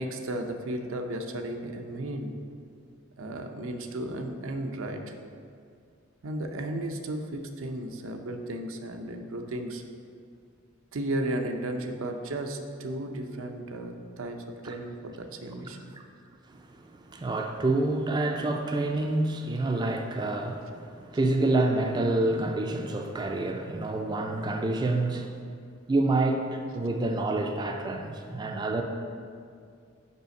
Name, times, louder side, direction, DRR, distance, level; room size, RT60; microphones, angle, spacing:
voice 1, 0.0-2.4 3.2-5.1 6.2-9.8 10.9-15.9, right 1 dB, 85° right, 4 dB, 0.6 m, -34 dB
voice 2, 16.5-25.4 25.9-28.8, right 2 dB, 20° right, 4 dB, 0.3 m, -28 dB
5.4 x 4.9 x 5.3 m, 2.2 s
head